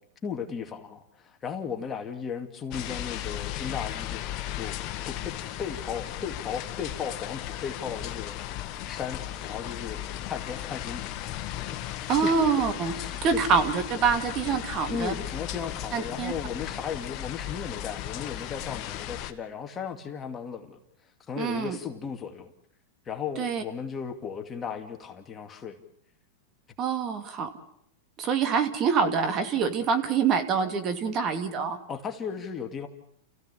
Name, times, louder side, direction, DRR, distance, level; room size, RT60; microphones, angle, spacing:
voice 1, 0.2-4.2 4.5-10.0 10.3-11.1 12.2-12.4 12.9-13.4 14.9-20.8 21.3-22.5 23.1-25.8 30.6-30.7 31.9-32.9, left 6 dB, 20° left, 5 dB, 2.4 m, -36 dB
sound 1, 2.7-19.3, left 13 dB, 45° left, 1.7 m, -36 dB
voice 2, 12.1-12.9 13.2-15.1 15.9-16.3 21.4-21.8 23.4-23.6 26.8-27.5 28.2-31.8, right 6 dB, 35° right, 8 dB, 2.6 m, -25 dB
29.0 x 16.0 x 8.5 m, 0.71 s
hypercardioid pair, 125°, 0 cm